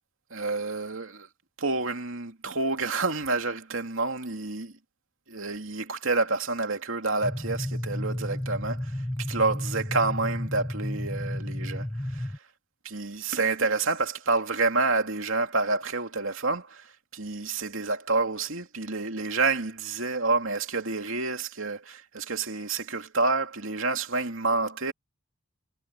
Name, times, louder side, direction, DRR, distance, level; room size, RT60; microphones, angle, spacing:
voice 1, 0.3-1.3 1.6-4.8 5.3-12.4 12.8-24.9, right 3 dB, 70° right, 2.7 m, -28 dB
sound 1, 7.2-12.4, left 1 dB, 10° left, 0.6 m, -32 dB
head